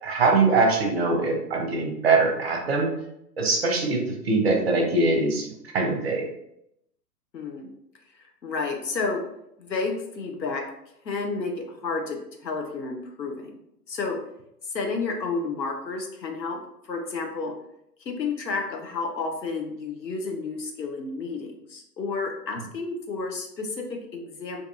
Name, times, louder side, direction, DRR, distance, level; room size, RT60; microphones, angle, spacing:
voice 1, 0.0-2.9 3.4-5.5 5.7-6.2, right 3 dB, 40° right, 1 dB, 0.5 m, -22 dB
voice 2, 7.3-7.7 8.4-9.2 9.6-10.7 11.0-13.6 13.9-14.2 14.7-16.6 16.8-17.5 18.1-24.7, left 4 dB, 90° left, 2 dB, 0.7 m, -31 dB
2.6 x 2.3 x 2.4 m, 0.80 s
figure-of-eight pair, 115°, 49 cm